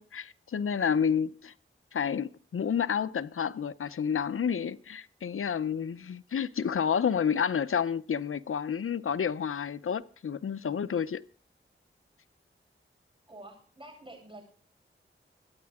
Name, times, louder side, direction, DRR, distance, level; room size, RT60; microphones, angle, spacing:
voice 1, 0.0-1.5 1.9-11.2, left 7 dB, 85° left, 0.6 m, -30 dB
voice 2, 13.3-14.4, right 1 dB, 25° right, 7.8 m, -48 dB
24.5 x 9.6 x 3.6 m
wide cardioid pair, 60°, 21 cm